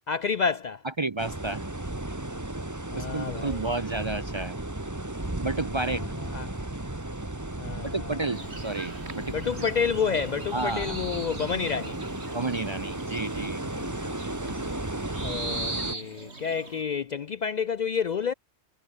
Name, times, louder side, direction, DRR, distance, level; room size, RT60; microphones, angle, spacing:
voice 1, 0.1-0.8 2.9-3.6 5.8-6.5 7.6-8.3 9.3-12.0 13.7-13.9 15.2-18.3, left 6 dB, 55° left, 0.5 m, -30 dB
voice 2, 1.0-1.6 2.9-4.6 5.4-6.0 7.9-9.4 10.5-11.0 12.3-13.6, right 3 dB, 35° right, 0.6 m, -31 dB
sound 1, 1.2-15.9, right 1 dB, 15° right, 1.6 m, -35 dB
sound 2, 8.3-16.8, right 3 dB, 80° right, 3.5 m, -40 dB
omnidirectional pair, 1.1 m